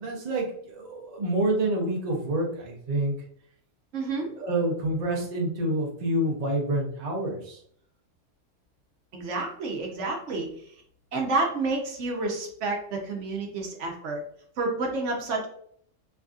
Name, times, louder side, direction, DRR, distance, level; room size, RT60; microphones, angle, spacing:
voice 1, 0.0-3.1 4.3-7.6, right 1 dB, 40° right, -1 dB, 0.7 m, -27 dB
voice 2, 3.9-4.3 9.1-10.7 11.1-14.2 14.6-15.5, right 3 dB, 70° right, 1 dB, 1.0 m, -29 dB
3.3 x 2.6 x 2.3 m, 0.62 s
omnidirectional pair, 1.3 m